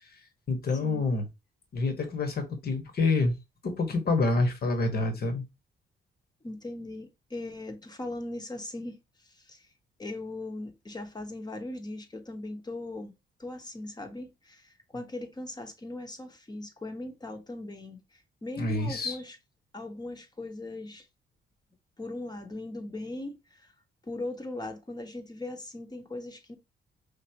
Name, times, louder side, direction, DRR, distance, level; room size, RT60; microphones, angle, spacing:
voice 1, 0.5-1.2 1.7-3.4 3.6-5.4 18.6-19.2, left 3 dB, 50° left, 1.4 m, -27 dB
voice 2, 6.4-9.0 9.2-9.7 10.0-13.1 13.4-19.4 19.7-21.1 22.0-23.7 24.0-26.5, left 2 dB, 20° left, 1.1 m, -39 dB
5.2 x 2.7 x 2.9 m
cardioid pair, 90°, 20 cm